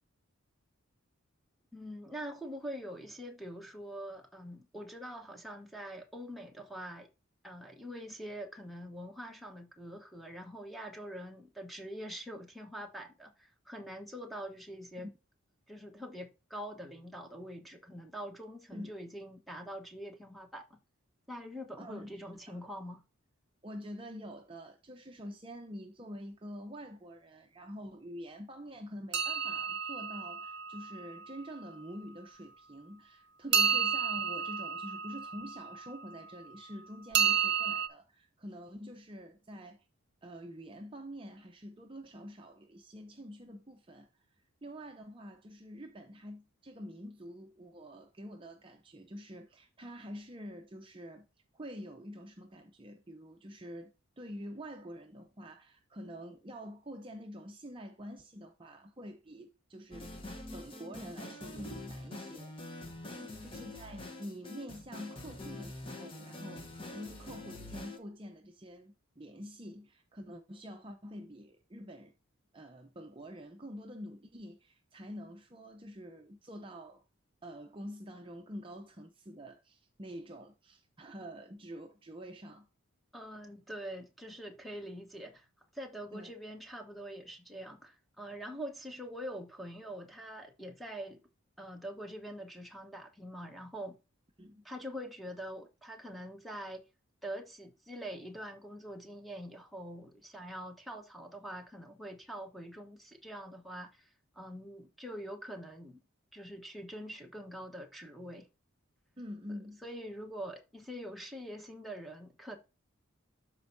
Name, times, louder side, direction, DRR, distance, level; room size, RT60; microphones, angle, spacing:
voice 1, 1.7-7.1 7.4-15.1 15.7-20.7 21.3-23.0 63.2-63.6 83.1-85.5 85.7-91.2 91.6-94.0 94.6-96.8 97.2-104.1 104.3-106.0 106.3-108.5 109.8-112.6, equal, ahead, 1.0 m, -44 dB
voice 2, 21.8-22.6 23.6-39.9 40.2-44.1 44.6-51.3 51.5-60.2 60.5-62.5 63.4-66.7 66.9-72.1 72.5-77.0 77.4-82.7 86.1-86.3 94.4-94.7 109.2-110.0, equal, 25° right, 0.6 m, -46 dB
sound 1, 29.1-31.2 33.5-35.9 37.1-37.9, right 7 dB, 50° right, 0.9 m, -31 dB
sound 2, 59.9-68.0, left 2 dB, 25° left, 0.9 m, -45 dB
12.5 x 4.5 x 2.6 m
head